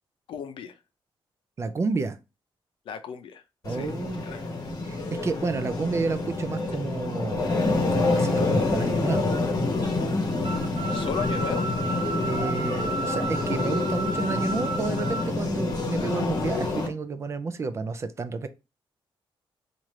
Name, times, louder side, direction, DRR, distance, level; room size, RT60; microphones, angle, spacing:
voice 1, 0.3-0.8 2.9-3.4 3.7-4.8 10.9-11.8, left 7 dB, 70° left, 0.5 m, -35 dB
voice 2, 1.6-2.2 3.6-4.2 4.8-5.0 5.2-7.5 7.9-9.3 12.2-18.5, right 4 dB, 30° right, 0.4 m, -30 dB
sound 1, 3.6-16.9, left 3 dB, 40° left, 1.0 m, -27 dB
sound 2, 10.4-15.3, right 3 dB, 65° right, 0.8 m, -33 dB
3.2 x 2.5 x 4.1 m
wide cardioid pair, 145°, 9 cm